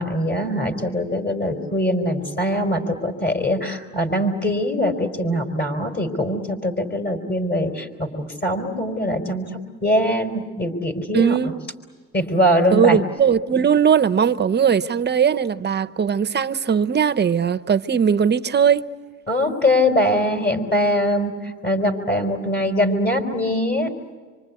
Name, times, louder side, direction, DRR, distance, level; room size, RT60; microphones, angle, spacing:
voice 1, 0.0-9.5 9.8-11.4 12.1-13.0 19.3-23.9, left 1 dB, 35° left, 4.3 m, -22 dB
voice 2, 11.1-11.6 12.7-18.8, right 7 dB, 35° right, 0.8 m, -19 dB
26.5 x 25.5 x 8.3 m
cardioid pair, 90°, 30 cm